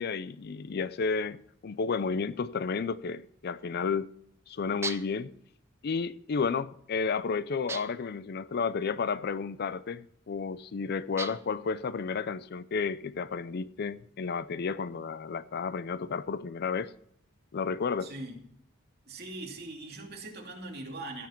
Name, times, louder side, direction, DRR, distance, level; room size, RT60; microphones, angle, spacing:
voice 1, 0.0-4.1 4.5-5.3 5.8-16.9 17.5-18.1, left 5 dB, 50° left, 0.4 m, -32 dB
sound 1, 4.8-5.3 7.7-8.1 11.2-11.6, right 4 dB, 15° right, 0.4 m, -38 dB
voice 2, 18.0-18.3 19.1-21.3, right 2 dB, 50° right, 2.7 m, -41 dB
16.5 x 7.2 x 4.4 m
head